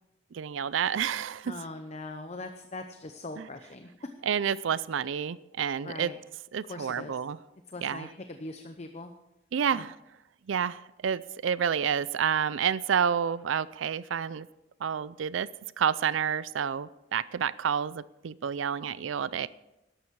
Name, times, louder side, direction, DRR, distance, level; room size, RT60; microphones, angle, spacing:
voice 1, 0.3-1.5 3.4-3.5 4.2-6.1 6.5-7.4 7.8-8.1 9.5-9.9 10.5-14.5 14.8-15.5 15.8-19.5, right 7 dB, 90° right, 19 dB, 0.4 m, -29 dB
voice 2, 1.4-4.1 5.8-6.2 6.7-7.2 7.7-9.1 9.7-9.8, left 2 dB, 35° left, 7 dB, 0.7 m, -41 dB
13.0 x 11.5 x 4.7 m, 0.91 s
head